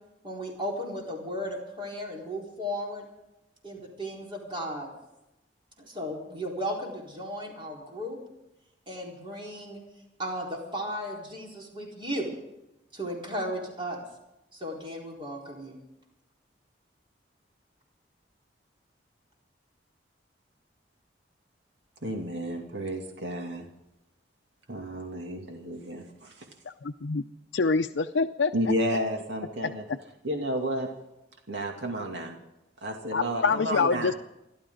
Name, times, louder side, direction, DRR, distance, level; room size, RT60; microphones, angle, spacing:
voice 1, 0.2-3.0 3.6-4.9 5.8-8.2 8.9-9.8 10.2-12.3 12.9-14.0 14.5-15.8, equal, 30° right, 4.2 m, -35 dB
voice 2, 22.0-23.7 24.7-26.5 28.5-30.9 31.5-32.4 32.8-34.1, equal, 70° right, 2.5 m, -32 dB
voice 3, 26.8-27.2 27.5-28.5 33.1-34.1, left 4 dB, 80° left, 0.6 m, -25 dB
29.5 x 12.5 x 3.9 m
head